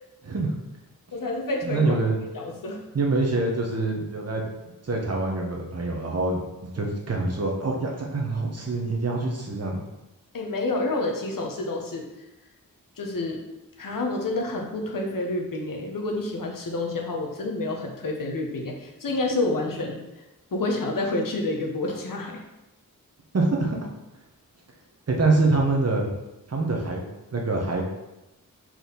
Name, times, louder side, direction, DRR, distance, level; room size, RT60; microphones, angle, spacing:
voice 1, 0.2-0.5 1.6-2.2 2.9-4.4 4.8-9.8 23.3-23.9 25.1-26.1 26.5-27.0 27.3-27.9, right 3 dB, 45° right, 0 dB, 1.2 m, -25 dB
voice 2, 1.1-1.9 2.3-2.8 10.3-12.1 13.0-13.4 13.8-20.0 20.5-22.4, left 2 dB, 70° left, 1 dB, 1.1 m, -28 dB
4.6 x 4.3 x 5.4 m, 0.97 s
wide cardioid pair, 135°, 34 cm